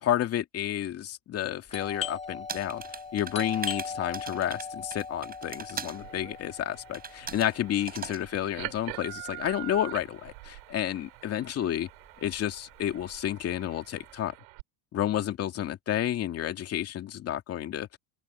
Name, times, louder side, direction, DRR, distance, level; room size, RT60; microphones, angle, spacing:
voice 1, 0.0-11.9 12.2-14.3 14.9-18.0, left 11 dB, 35° left, 2.5 m, -31 dB
Doorbell, 1.7-11.1 11.3-11.4 12.1-12.4 12.7-14.1, left 5 dB, 15° left, 3.3 m, -40 dB
sound 1, 2.5-6.0 6.9-7.5 7.9-8.2, right 6 dB, 20° right, 6.7 m, -40 dB
sound 2, 5.9-14.6, right 28 dB, 80° right, 4.7 m, -45 dB
open air
supercardioid pair, 140°, 40 cm